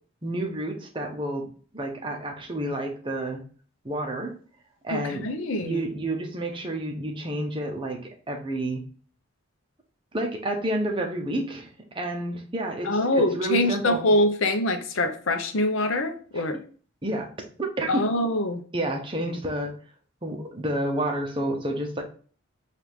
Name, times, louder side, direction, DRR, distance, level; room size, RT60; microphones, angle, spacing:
voice 1, 0.2-1.5 1.7-3.4 3.8-4.3 4.8-5.2 5.6-8.8 10.1-11.7 11.9-14.0 16.3-16.4 17.0-17.3 17.6-18.1 18.7-19.8 20.2-22.0, right 1 dB, 25° right, 1 dB, 0.7 m, -29 dB
voice 2, 4.9-5.8 12.8-16.6 17.9-18.6, left 1 dB, 70° left, 7 dB, 0.6 m, -24 dB
4.6 x 2.4 x 3.5 m, 0.42 s
head